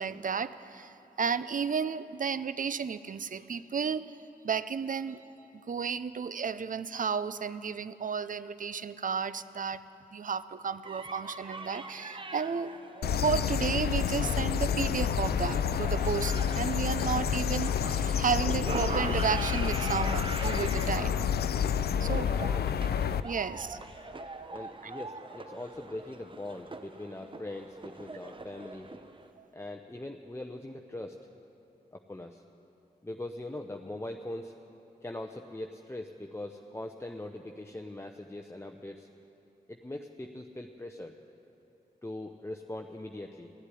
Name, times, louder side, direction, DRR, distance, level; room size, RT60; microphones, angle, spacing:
voice 1, 0.0-4.2 4.4-5.2 5.7-9.8 10.1-12.7 13.1-21.2 22.0-22.3 23.2-24.5 29.4-29.5, right 6 dB, 55° right, 14 dB, 0.6 m, -33 dB
sound 1, 10.8-29.3, right 2 dB, 30° right, 1.0 m, -43 dB
sound 2, 13.0-23.2, left 8 dB, 75° left, 0.4 m, -29 dB
voice 2, 21.9-22.8 23.5-23.6 24.5-28.9 29.5-31.2 31.9-32.4 33.0-34.5 35.0-39.1 39.7-41.2 42.0-43.5, left 1 dB, 15° left, 3 dB, 0.8 m, -41 dB
14.5 x 8.2 x 10.0 m, 2.8 s
cardioid pair, 45°, 17 cm